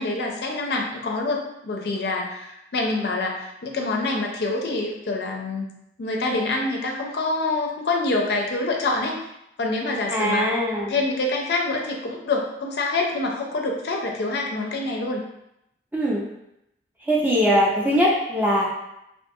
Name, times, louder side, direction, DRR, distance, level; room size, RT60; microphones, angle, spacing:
voice 1, 0.0-5.7 6.0-9.2 9.6-10.5 10.9-15.2, left 2 dB, 65° left, 0 dB, 0.4 m, -26 dB
voice 2, 10.1-10.9 15.9-16.2 17.0-18.6, equal, 10° right, -4 dB, 0.5 m, -21 dB
2.5 x 2.3 x 2.6 m, 0.84 s
head